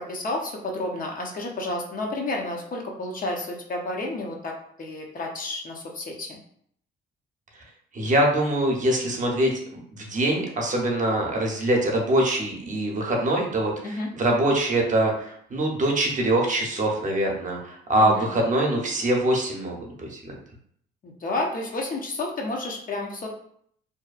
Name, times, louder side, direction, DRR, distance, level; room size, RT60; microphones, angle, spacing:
voice 1, 0.0-6.4 13.8-14.1 18.0-18.3 21.0-23.3, left 2 dB, 45° left, 0 dB, 0.6 m, -31 dB
voice 2, 7.9-20.3, right 1 dB, 40° right, 0 dB, 0.7 m, -24 dB
2.7 x 2.1 x 2.4 m, 0.65 s
cardioid pair, 90°, 20 cm